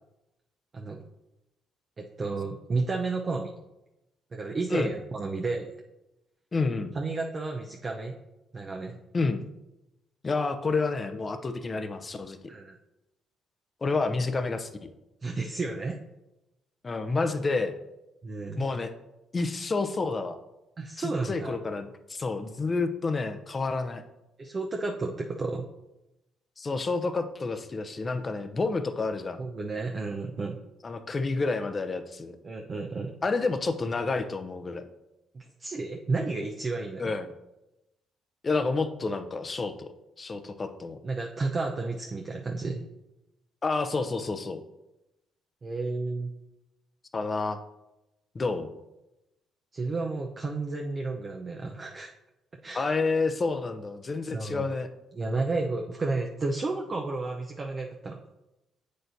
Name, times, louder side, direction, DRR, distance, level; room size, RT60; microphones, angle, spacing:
voice 1, 2.0-3.5 4.3-5.7 6.9-8.1 8.5-9.0 12.5-12.8 15.2-16.0 18.2-18.7 20.8-21.6 24.4-25.7 29.4-30.6 32.4-33.1 35.3-37.1 41.0-42.8 45.6-46.3 49.7-52.1 52.6-52.9 54.3-54.7 55.2-58.2, right 3 dB, 40° right, 1 dB, 0.7 m, -32 dB
voice 2, 6.5-6.9 9.1-9.4 10.2-12.4 13.8-14.9 16.8-17.8 18.6-18.9 19.3-20.4 21.0-24.0 26.6-29.4 30.8-32.4 33.2-34.8 37.0-37.3 38.4-39.9 40.2-41.0 43.6-44.6 47.1-47.6 48.3-48.7 52.7-54.9, left 3 dB, 35° left, 8 dB, 0.7 m, -29 dB
7.5 x 6.5 x 2.7 m, 0.94 s
hypercardioid pair, 55°, 0 cm